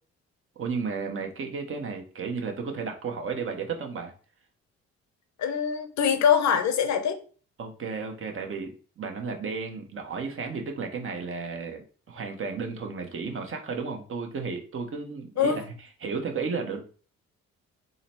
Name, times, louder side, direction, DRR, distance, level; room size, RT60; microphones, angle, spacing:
voice 1, 0.6-4.1 7.6-11.8 12.1-15.7 16.0-16.8, right 5 dB, 45° right, 3 dB, 0.9 m, -33 dB
voice 2, 5.4-7.2 15.4-15.6, left 7 dB, 65° left, 8 dB, 0.7 m, -23 dB
3.8 x 2.1 x 4.2 m, 0.39 s
cardioid pair, 90°, 30 cm